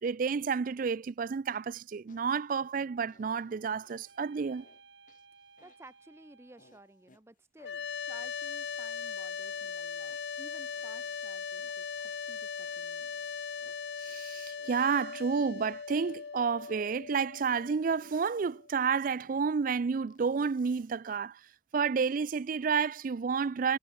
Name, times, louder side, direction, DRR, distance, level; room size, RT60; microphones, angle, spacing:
voice 1, 0.0-4.6 14.0-21.4 21.7-23.8, right 5 dB, 45° right, 0.4 m, -30 dB
sound 1, 2.1-2.7 3.1-4.2 4.6-4.8 5.1-6.0 6.6-7.2 7.6-9.8 10.1-11.7 12.1-14.7 15.1-15.2 15.6-17.2 17.6-18.5 19.1-19.6 20.1-21.2, left 3 dB, 45° left, 2.2 m, -65 dB
sound 2, 2.9-7.2, right 4 dB, 80° right, 6.9 m, -60 dB
voice 2, 5.6-13.1, right 2 dB, 15° right, 0.7 m, -56 dB
sound 3, 7.6-18.7, left 6 dB, 65° left, 0.5 m, -39 dB
head